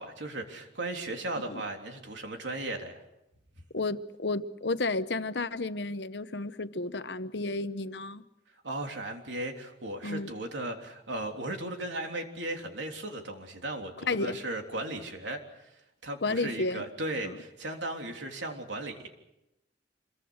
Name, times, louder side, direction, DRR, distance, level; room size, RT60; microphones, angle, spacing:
voice 1, 0.0-3.0 8.6-15.7 16.0-19.1, right 2 dB, 85° right, 3.5 m, -36 dB
voice 2, 3.7-8.2 10.0-10.3 14.0-14.4 16.2-16.8 17.2-17.4, left 3 dB, 70° left, 1.0 m, -32 dB
26.5 x 22.5 x 6.5 m
head